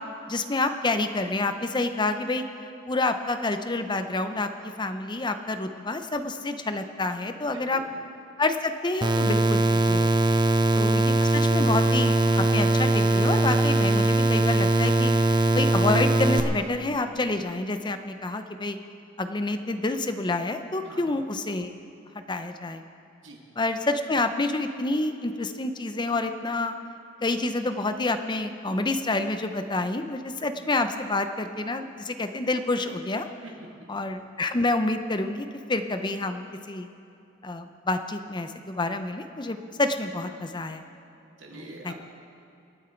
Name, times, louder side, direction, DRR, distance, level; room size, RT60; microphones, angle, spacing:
voice 1, 0.3-2.4 2.9-7.8 8.4-10.1 10.7-15.1 15.5-18.8 19.2-21.7 22.1-22.8 23.6-26.7 27.2-33.2 33.9-36.9 37.4-40.8 41.5-41.9, left 2 dB, 25° left, 8 dB, 0.7 m, -28 dB
voice 2, 7.5-7.9 20.8-21.0 23.2-23.4 33.4-33.9 41.4-41.9, right 1 dB, 70° right, 0 dB, 2.4 m, -44 dB
sound 1, 9.0-16.4, right 2 dB, 25° right, 0.7 m, -21 dB
26.0 x 9.1 x 4.5 m, 2.7 s
head